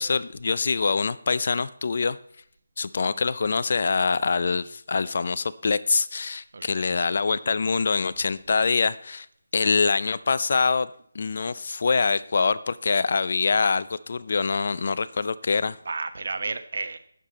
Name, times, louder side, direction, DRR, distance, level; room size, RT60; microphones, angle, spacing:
voice 1, 0.0-2.2 2.8-9.3 9.5-10.9 11.1-15.8, left 4 dB, 50° left, 15 dB, 0.6 m, -24 dB
voice 2, 6.5-7.1 15.8-17.0, right 3 dB, 60° right, 10 dB, 1.1 m, -33 dB
12.0 x 7.4 x 4.2 m, 0.67 s
figure-of-eight pair, 165°, 0 cm